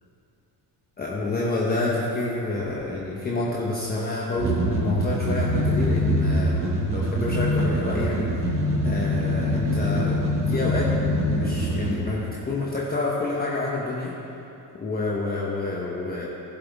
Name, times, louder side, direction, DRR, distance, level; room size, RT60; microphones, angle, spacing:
voice 1, 1.0-8.6 8.8-14.1 14.7-16.3, left 2 dB, 20° left, -5 dB, 1.1 m, -28 dB
sound 1, 4.4-12.0, right 2 dB, 30° right, 1.4 m, -26 dB
sound 2, 5.1-12.0, left 4 dB, 70° right, 1.7 m, -27 dB
15.0 x 8.0 x 3.6 m, 2.8 s
cardioid pair, 150°, 42 cm